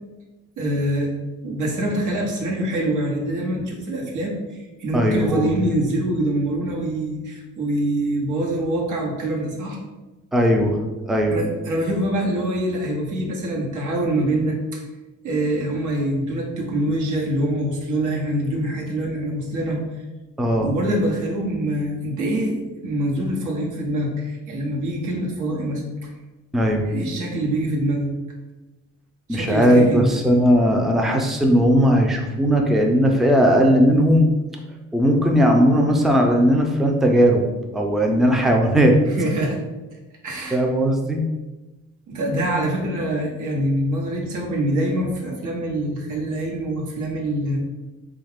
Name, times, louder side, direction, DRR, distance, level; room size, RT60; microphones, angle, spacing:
voice 1, 0.6-1.1 1.4-9.8 11.3-14.8 15.2-19.8 20.6-22.6 22.8-26.1 26.8-28.1 29.3-30.2 39.2-39.6 40.2-40.6 42.1-47.6, right 1 dB, 85° right, -1 dB, 1.0 m, -24 dB
voice 2, 4.9-5.5 10.3-11.3 20.4-20.7 26.5-26.9 29.3-34.3 34.9-37.4 37.7-39.0 40.5-41.2, equal, ahead, 1 dB, 0.4 m, -17 dB
3.6 x 2.4 x 3.4 m, 1.1 s
cardioid pair, 90°, 30 cm